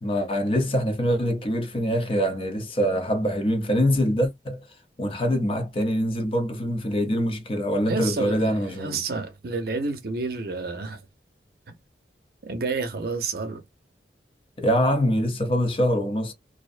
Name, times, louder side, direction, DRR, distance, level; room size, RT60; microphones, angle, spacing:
voice 1, 0.0-4.7 5.0-9.0 14.6-16.3, equal, 30° left, 0.6 m, -24 dB
voice 2, 7.8-11.0 11.7-11.8 12.4-13.6, right 4 dB, 55° right, 0.6 m, -30 dB
2.5 x 2.1 x 2.4 m
head